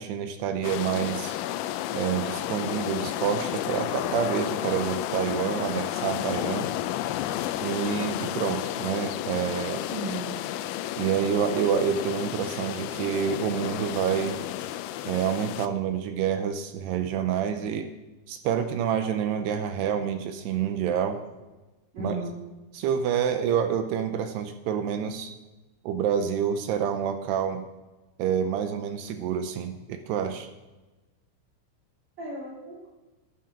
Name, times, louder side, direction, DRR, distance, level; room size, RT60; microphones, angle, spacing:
voice 1, 0.0-1.4 1.9-6.7 7.6-9.8 11.0-14.4 15.1-17.9 18.3-21.2 22.0-22.2 22.7-25.3 25.8-27.7 28.2-30.5, right 8 dB, 80° right, 8 dB, 2.5 m, -28 dB
sound 1, 0.6-15.7, left 13 dB, 85° left, 2.9 m, -32 dB
voice 2, 9.9-10.3 21.9-22.5 32.2-32.9, right 2 dB, 40° right, -7 dB, 3.7 m, -35 dB
11.5 x 10.0 x 5.9 m, 1.1 s
omnidirectional pair, 5.5 m